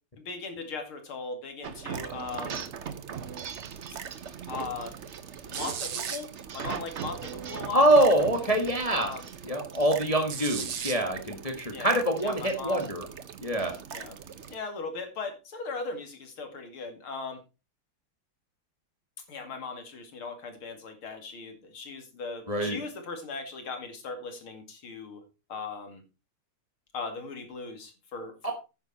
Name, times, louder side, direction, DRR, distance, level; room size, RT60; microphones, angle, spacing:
voice 1, 0.2-2.7 4.5-4.9 5.5-6.3 6.5-7.9 8.9-9.3 11.6-11.9 12.2-12.9 13.9-14.2 14.5-17.4 19.3-25.2 25.5-26.0 26.9-28.5, left 4 dB, 85° left, 5 dB, 3.2 m, -38 dB
sound 1, 1.6-14.5, right 7 dB, 50° right, 0.8 m, -39 dB
voice 2, 7.7-9.1 9.5-13.0 13.4-13.7 22.5-22.8 28.4-28.5, right 1 dB, 20° left, 3 dB, 1.6 m, -25 dB
9.9 x 9.5 x 4.2 m, 0.30 s
omnidirectional pair, 2.3 m